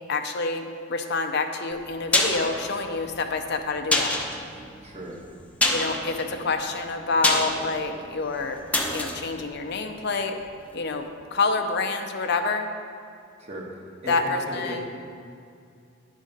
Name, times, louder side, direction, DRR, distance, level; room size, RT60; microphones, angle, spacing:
voice 1, 0.1-4.1 5.7-8.6 8.9-10.4 10.7-12.7 14.1-14.8, left 3 dB, 60° left, 5 dB, 0.6 m, -27 dB
sound 1, 1.7-10.6 10.9-11.0, left 1 dB, 5° left, 0.7 m, -28 dB
voice 2, 4.8-5.2 13.4-14.9, right 1 dB, 35° right, -1 dB, 1.3 m, -37 dB
9.7 x 6.4 x 5.3 m, 2.4 s
head